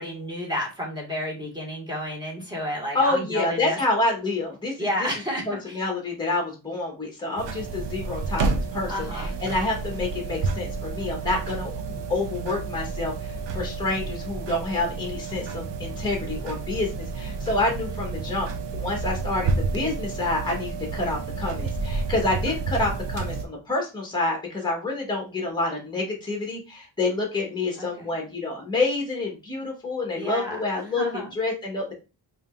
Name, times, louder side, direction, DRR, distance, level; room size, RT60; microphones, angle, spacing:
voice 1, 0.0-3.8 4.8-5.8 8.9-9.3 27.8-28.1 30.1-30.6 31.0-31.3, equal, 10° right, -2 dB, 2.0 m, -31 dB
voice 2, 2.9-5.1 5.5-31.9, left 2 dB, 10° left, 1 dB, 1.4 m, -28 dB
sound 1, 7.4-23.5, right 4 dB, 75° right, 0.7 m, -30 dB
5.0 x 2.9 x 2.6 m, 0.30 s
cardioid pair, 85°, 42 cm